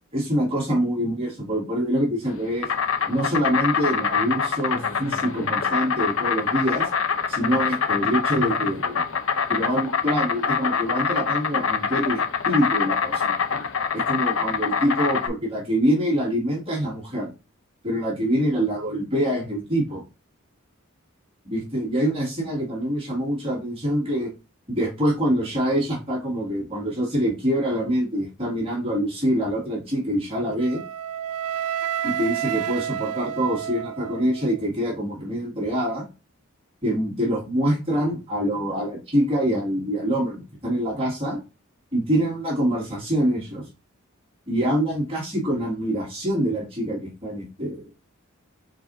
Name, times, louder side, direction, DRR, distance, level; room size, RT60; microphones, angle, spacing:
voice 1, 0.1-2.7 3.1-6.9 7.3-9.0 9.5-13.4 13.9-17.3 17.8-20.0 21.5-24.3 24.7-30.8 32.0-36.1 36.8-41.4 41.9-43.7 44.5-47.9, equal, 25° right, -4 dB, 1.9 m, -25 dB
Insect, 2.3-15.3, left 6 dB, 65° left, 0.6 m, -25 dB
Wind instrument woodwind instrument, 30.6-34.6, right 10 dB, 80° right, 0.3 m, -30 dB
4.7 x 4.3 x 2.6 m, 0.30 s
head